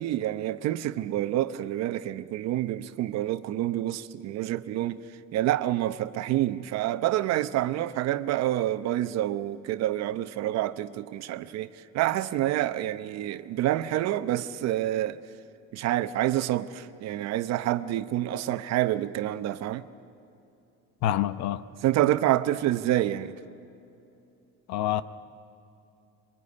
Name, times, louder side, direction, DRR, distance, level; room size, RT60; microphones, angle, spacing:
voice 1, 0.0-5.0 5.3-11.7 11.9-15.2 15.7-19.8 21.8-23.3, right 13 dB, 65° right, 0.9 m, -27 dB
voice 2, 21.0-21.6 24.7-25.0, left 12 dB, 70° left, 0.9 m, -26 dB
23.0 x 21.5 x 9.8 m
cardioid pair, 125°, 29 cm